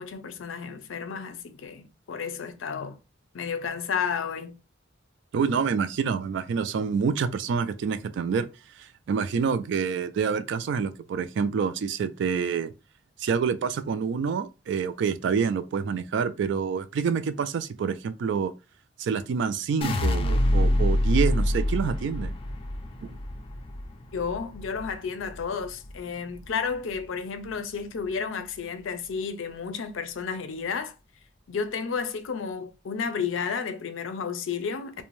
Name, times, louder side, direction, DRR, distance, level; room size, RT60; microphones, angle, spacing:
voice 1, 0.0-3.0 3.3-4.6 24.1-30.9 31.5-35.0, left 6 dB, 90° left, 0.5 m, -32 dB
voice 2, 5.3-8.5 8.8-12.7 13.2-18.5 19.0-22.3 23.0-23.2, right 6 dB, 65° right, 0.3 m, -27 dB
sound 1, 19.8-26.0 26.4-27.0, left 1 dB, 30° left, 0.4 m, -26 dB
2.5 x 2.1 x 3.0 m
head